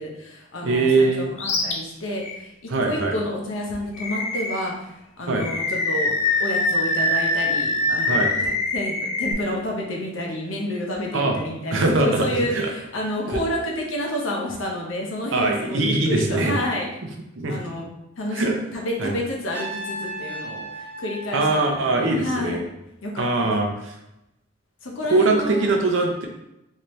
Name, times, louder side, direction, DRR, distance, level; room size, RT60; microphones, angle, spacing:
voice 1, 0.0-16.9 17.5-17.9 18.2-18.5 18.7-22.5 23.0-23.5 24.8-25.7, left 1 dB, 70° left, -1 dB, 0.8 m, -29 dB
voice 2, 0.6-1.3 2.7-3.2 5.3-5.5 8.1-8.3 11.1-11.4 11.7-12.3 12.5-12.7 13.3-13.4 15.3-16.5 17.4-17.6 18.3-18.6 19.0-19.1 21.3-22.6 23.2-23.9 25.1-26.3, right 2 dB, 65° right, 2 dB, 0.6 m, -22 dB
Animal, 1.4-1.7 2.2-2.4 4.0-4.7 5.4-9.3, left 2 dB, 35° left, 0.4 m, -24 dB
Trumpet, 19.5-22.5, right 1 dB, 10° right, 1.3 m, -36 dB
3.2 x 2.7 x 3.1 m, 0.86 s
head